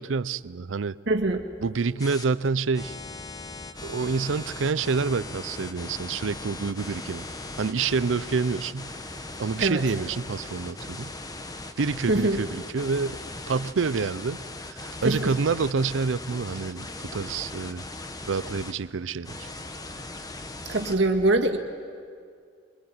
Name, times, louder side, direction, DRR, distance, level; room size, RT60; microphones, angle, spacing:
voice 1, 0.0-1.0 1.6-3.0 3.8-7.2 7.6-8.9 9.4-11.1 11.8-13.2 13.5-17.8 18.2-19.5, right 4 dB, 90° right, 18 dB, 0.6 m, -28 dB
voice 2, 1.1-1.4 9.6-9.8 12.1-12.4 15.0-15.3 20.7-21.6, right 2 dB, 65° right, 3 dB, 1.9 m, -23 dB
sound 1, 2.0-2.2 2.7-18.7 19.2-21.0, left 2 dB, 20° left, 1.0 m, -39 dB
23.5 x 23.0 x 9.6 m, 2.2 s
head